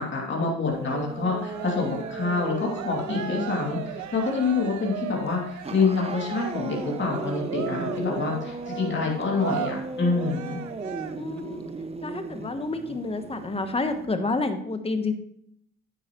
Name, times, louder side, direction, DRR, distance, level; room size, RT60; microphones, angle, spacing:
voice 1, 0.0-10.6, left 4 dB, 40° left, -2 dB, 2.7 m, -27 dB
sound 1, 0.7-14.1, right 3 dB, 20° right, 0.8 m, -37 dB
Cheering, 1.3-11.4, right 8 dB, 70° right, 0.9 m, -37 dB
voice 2, 11.2-11.6 12.0-15.1, left 3 dB, 20° left, 8 dB, 1.1 m, -29 dB
9.5 x 9.0 x 3.1 m, 0.71 s
cardioid pair, 90°, 30 cm